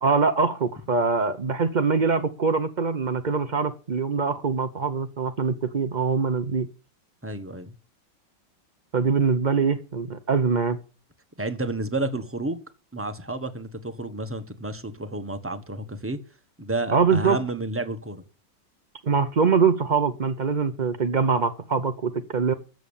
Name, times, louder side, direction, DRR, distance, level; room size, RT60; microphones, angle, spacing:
voice 1, 0.0-6.7 8.9-10.8 16.9-17.4 19.0-22.5, right 5 dB, 85° right, 9 dB, 0.4 m, -23 dB
voice 2, 7.2-7.7 11.4-12.6 12.9-16.2 16.6-18.2, right 2 dB, 10° right, 8 dB, 1.0 m, -31 dB
13.5 x 7.6 x 7.1 m, 0.37 s
omnidirectional pair, 2.1 m